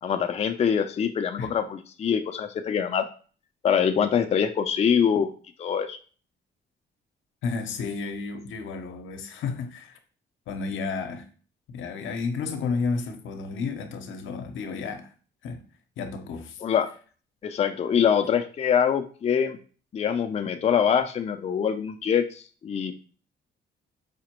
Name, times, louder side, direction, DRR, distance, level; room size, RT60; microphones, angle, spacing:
voice 1, 0.0-3.0 3.6-5.3 5.6-6.0 16.6-16.9 17.4-19.6 19.9-22.9, left 7 dB, 30° left, 0.4 m, -24 dB
voice 2, 7.4-10.0 10.5-11.3 11.7-15.1 15.4-15.6 16.0-16.6, left 4 dB, 75° left, 0.7 m, -32 dB
4.9 x 2.1 x 2.9 m
cardioid pair, 90°, 20 cm